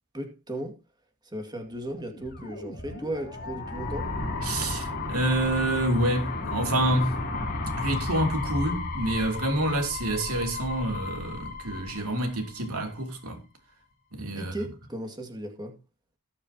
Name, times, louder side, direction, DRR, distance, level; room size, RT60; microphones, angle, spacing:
voice 1, 0.1-0.8 1.3-4.1 14.4-15.8, right 1 dB, 20° right, 2.2 m, -36 dB
sound 1, 2.0-12.9, left 2 dB, 45° left, 4.2 m, -34 dB
voice 2, 4.4-7.2 7.8-13.4 14.1-14.5, right 1 dB, 80° right, 3.2 m, -27 dB
19.0 x 7.1 x 2.9 m
head